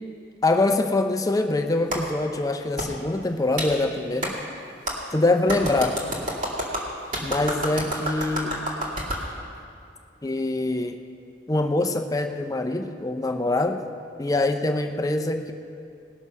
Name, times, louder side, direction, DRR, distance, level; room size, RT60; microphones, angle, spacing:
voice 1, 0.4-4.4 5.1-6.0 7.2-8.7 10.2-11.0 11.5-13.8 14.2-15.5, left 2 dB, 20° left, 6 dB, 0.6 m, -24 dB
Clapping, 1.9-2.0 2.8-2.9 3.6-3.7 4.2-4.3 4.9-5.0 5.5-9.2, right 1 dB, 45° right, 2.3 m, -29 dB
19.5 x 6.6 x 5.5 m, 2.4 s
head